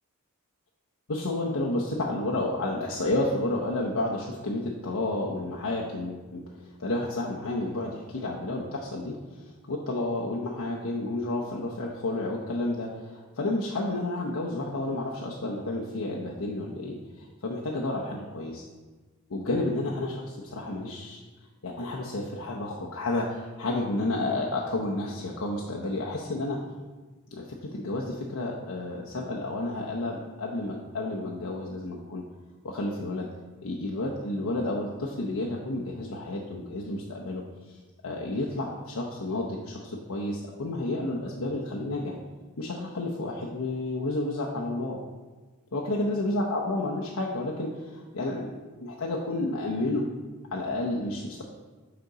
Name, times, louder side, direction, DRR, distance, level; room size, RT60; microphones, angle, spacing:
voice 1, 1.1-18.6 19.3-21.2 21.6-26.6 27.3-32.2 32.6-33.3 33.6-37.8 38.0-42.2 42.6-45.0 45.7-50.1 50.5-51.4, left 2 dB, 75° left, -3 dB, 0.8 m, -31 dB
6.6 x 5.2 x 4.8 m, 1.3 s
head